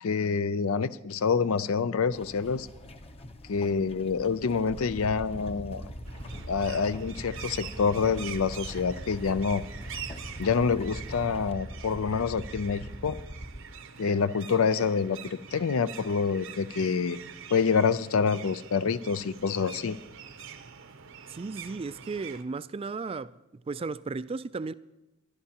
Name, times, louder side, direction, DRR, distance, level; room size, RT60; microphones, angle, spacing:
voice 1, 0.0-2.7 3.5-5.8 6.5-9.6 10.4-13.2 14.0-17.2 17.5-20.0, left 5 dB, 80° left, 0.5 m, -27 dB
sound 1, 2.1-11.5, left 1 dB, 30° left, 0.7 m, -47 dB
sound 2, 4.9-13.6, equal, 45° left, 1.5 m, -41 dB
sound 3, 6.0-22.4, right 7 dB, 65° right, 0.8 m, -45 dB
voice 2, 21.3-24.7, right 4 dB, 25° right, 0.3 m, -35 dB
23.0 x 11.5 x 2.9 m
head